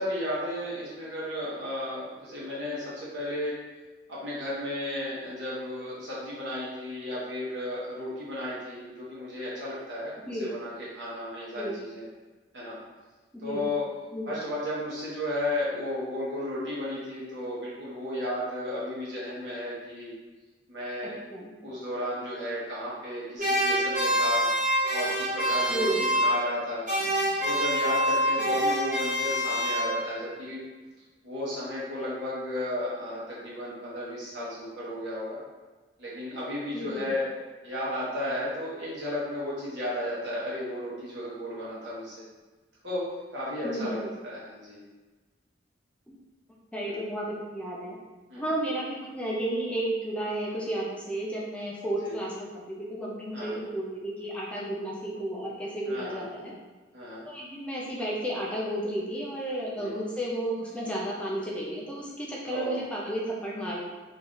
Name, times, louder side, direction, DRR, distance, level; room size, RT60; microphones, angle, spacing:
voice 1, 0.0-3.6 4.1-10.1 10.4-12.1 12.5-12.8 13.4-13.8 14.3-20.1 20.7-21.1 21.6-24.5 24.9-26.9 27.4-30.6 31.2-35.4 36.0-37.2 37.6-42.2 42.8-44.8 46.8-47.0 48.3-48.5 52.0-52.1 53.3-53.6 55.9-56.2 56.9-57.3 59.7-59.9 62.4-62.8, left 1 dB, 80° right, -8 dB, 1.4 m, -34 dB
voice 2, 13.3-13.6 14.1-14.3 21.3-21.5 25.7-26.0 28.4-28.5 36.7-37.1 43.6-44.1 46.1-46.2 46.7-47.3 47.5-48.0 48.4-56.5 57.2-63.8, right 1 dB, 5° left, -5 dB, 0.6 m, -32 dB
sound 1, 23.4-26.6 26.9-30.3, equal, 50° right, 1.3 m, -26 dB
3.1 x 2.5 x 3.8 m, 1.2 s
head